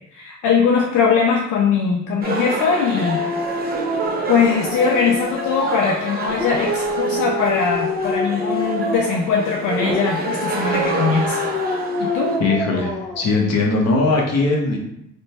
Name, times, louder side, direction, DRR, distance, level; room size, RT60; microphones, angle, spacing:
voice 1, 0.1-3.2 4.3-11.5 12.0-12.4, left 6 dB, 80° left, 0 dB, 0.5 m, -20 dB
sound 1, 2.2-12.4, right 3 dB, 30° right, 0.6 m, -28 dB
Dog, 3.0-5.8 6.2-9.3 9.8-13.3, left 1 dB, 5° left, 1.0 m, -26 dB
voice 2, 12.4-12.9 13.2-14.8, left 3 dB, 55° left, -1 dB, 1.0 m, -19 dB
3.0 x 2.2 x 4.1 m, 0.78 s
cardioid pair, 90°, 30 cm